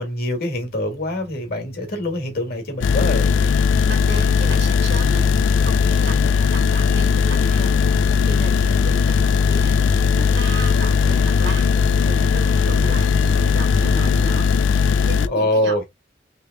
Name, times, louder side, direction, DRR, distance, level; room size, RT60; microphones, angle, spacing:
voice 1, 0.0-3.4 15.3-15.8, left 1 dB, 55° left, 1.4 m, -24 dB
sound 1, 0.5-14.4, right 1 dB, 20° right, 0.5 m, -36 dB
sound 2, 2.8-15.3, left 5 dB, 90° left, 0.4 m, -18 dB
voice 2, 3.8-15.8, right 2 dB, 65° right, 1.4 m, -35 dB
3.3 x 2.9 x 3.4 m
head